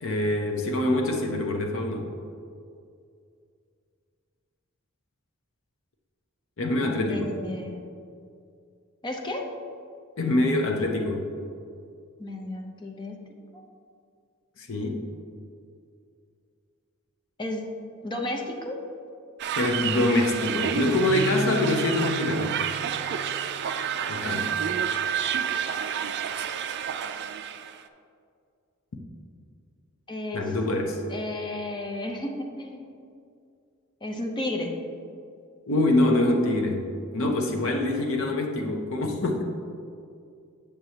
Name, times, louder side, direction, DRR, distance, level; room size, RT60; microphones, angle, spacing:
voice 1, 0.0-2.1 6.6-7.4 10.2-11.3 14.6-15.0 19.6-22.6 24.1-24.5 30.3-31.0 35.7-36.9 37.1-39.4, left 2 dB, 65° left, 1 dB, 0.7 m, -25 dB
voice 2, 7.1-7.8 9.0-9.4 12.2-13.2 13.5-13.7 17.4-17.7 18.0-18.8 30.1-30.5 31.1-32.9 34.0-34.7, left 1 dB, 20° left, 2 dB, 0.7 m, -33 dB
sound 1, 19.4-27.8, right 8 dB, 55° right, 0.3 m, -29 dB
Keyboard (musical), 20.9-23.8, right 4 dB, 15° right, 0.7 m, -35 dB
7.8 x 6.8 x 2.8 m, 2.4 s
head